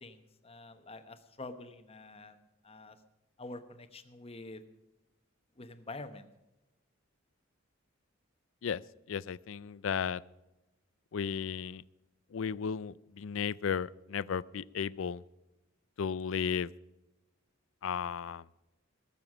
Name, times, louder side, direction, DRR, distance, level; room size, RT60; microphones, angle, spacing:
voice 1, 0.0-2.3 2.6-3.0 3.4-4.6 5.6-6.2, left 2 dB, 30° left, 9 dB, 1.0 m, -47 dB
voice 2, 9.1-10.2 11.1-11.8 12.3-15.2 16.0-16.7 17.8-18.4, left 7 dB, 65° left, 21 dB, 0.4 m, -34 dB
20.5 x 7.0 x 6.2 m, 0.98 s
head